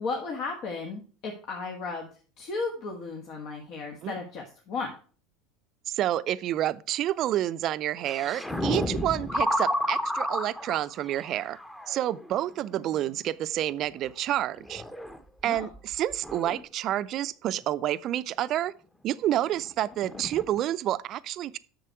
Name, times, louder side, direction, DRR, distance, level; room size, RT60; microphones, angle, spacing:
voice 1, 0.0-2.1 2.4-4.9 15.4-15.7, left 4 dB, 55° left, 1.6 m, -34 dB
voice 2, 5.9-11.6 11.9-14.8 15.4-18.7 19.0-21.6, right 12 dB, 50° right, 0.5 m, -29 dB
sound 1, 8.1-12.3 12.7-13.0 14.3-15.2 15.6-16.6 19.6-19.7 19.8-20.6, left 1 dB, 10° left, 1.0 m, -31 dB
7.6 x 6.7 x 4.6 m
hypercardioid pair, 80°, 0 cm